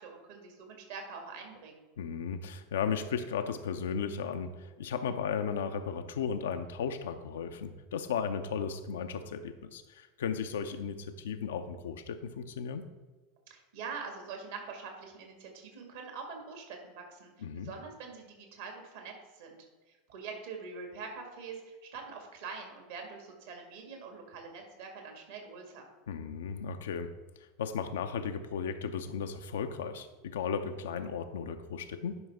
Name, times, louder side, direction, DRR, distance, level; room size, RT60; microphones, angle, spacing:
voice 1, 0.0-1.8 13.5-25.9, right 5 dB, 65° right, 3 dB, 1.9 m, -44 dB
voice 2, 2.0-12.9 17.4-17.7 26.1-27.1 27.6-32.2, left 6 dB, 70° left, 8 dB, 0.6 m, -35 dB
11.0 x 5.4 x 3.5 m, 1.2 s
figure-of-eight pair, 80°, 0 cm